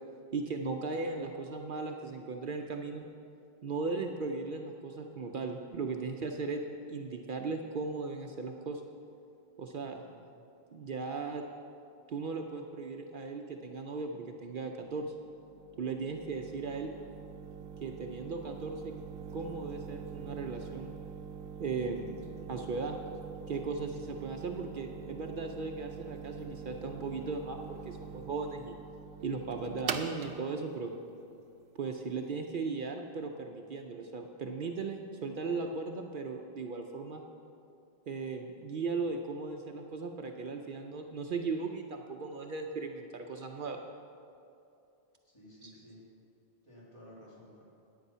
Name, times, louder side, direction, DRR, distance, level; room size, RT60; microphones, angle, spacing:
voice 1, 0.3-3.1 3.6-6.6 6.9-8.8 9.6-10.0 10.7-11.4 12.1-15.1 15.8-16.9 17.8-18.9 19.3-20.9 21.6-23.0 23.5-28.8 29.2-30.9 31.8-37.2 38.1-43.8 45.6-45.7, right 4 dB, 60° right, 3 dB, 0.7 m, -37 dB
voice 2, 9.8-10.2 45.2-46.0 46.6-47.7, equal, 30° left, -7 dB, 2.7 m, -54 dB
sound 1, 14.8-32.4, right 6 dB, 90° right, 0.9 m, -44 dB
10.5 x 8.8 x 5.5 m, 2.6 s
omnidirectional pair, 1.0 m